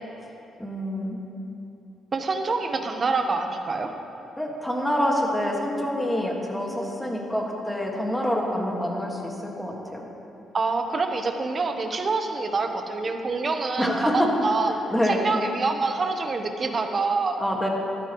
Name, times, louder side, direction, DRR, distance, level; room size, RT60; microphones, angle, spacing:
voice 1, 0.6-1.2 4.4-10.0 13.8-14.3 14.7-15.2 17.4-17.7, equal, 5° left, -1 dB, 1.8 m, -26 dB
voice 2, 2.1-3.9 10.5-14.7 15.1-17.4, right 3 dB, 40° right, 5 dB, 0.9 m, -26 dB
13.0 x 12.5 x 3.1 m, 2.9 s
cardioid pair, 90°, 0 cm